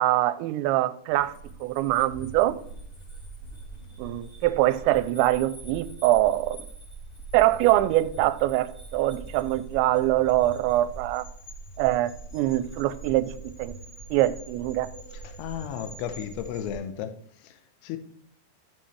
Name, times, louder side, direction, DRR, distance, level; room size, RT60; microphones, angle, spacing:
voice 1, 0.0-1.3 1.6-2.6 4.0-6.7 7.3-11.3 11.8-13.3 13.6-13.7 14.1-14.9, right 15 dB, 85° right, 2.8 m, -23 dB
sound 1, 1.1-16.8, right 3 dB, 20° left, 1.9 m, -43 dB
voice 2, 15.1-18.0, left 9 dB, 80° left, 2.6 m, -35 dB
12.5 x 5.8 x 3.1 m
omnidirectional pair, 5.2 m